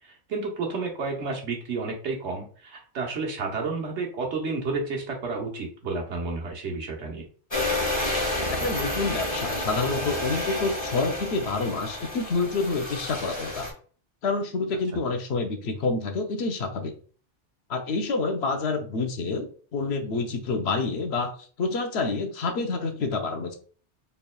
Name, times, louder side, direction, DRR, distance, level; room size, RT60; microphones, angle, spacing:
voice 1, 0.3-7.3, right 3 dB, 80° right, 1 dB, 1.2 m, -31 dB
sound 1, 7.5-13.7, left 1 dB, 25° left, 1.0 m, -30 dB
voice 2, 8.5-13.7 14.2-16.9 17.7-21.3 21.6-23.6, left 3 dB, 70° left, 5 dB, 0.9 m, -28 dB
4.2 x 3.4 x 2.2 m, 0.42 s
omnidirectional pair, 1.2 m